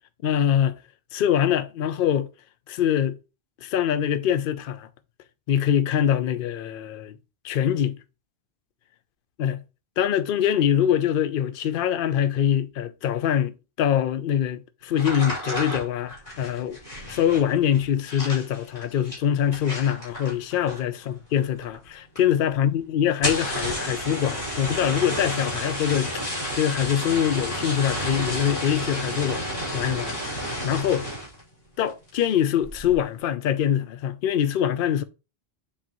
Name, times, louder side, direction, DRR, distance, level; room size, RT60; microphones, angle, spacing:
voice 1, 0.2-0.8 1.1-2.3 2.7-3.2 3.6-4.9 5.5-7.2 7.4-8.0 9.4-9.6 10.0-16.8 17.1-29.5 29.7-31.1 31.8-35.0, left 9 dB, 65° left, 0.7 m, -24 dB
sound 1, 14.9-21.1 21.3-21.9 22.2-22.3 22.5-22.6 23.1-31.4 31.8-32.2 32.6-33.0, equal, 35° left, 3.2 m, -31 dB
7.5 x 4.3 x 2.9 m
omnidirectional pair, 1.0 m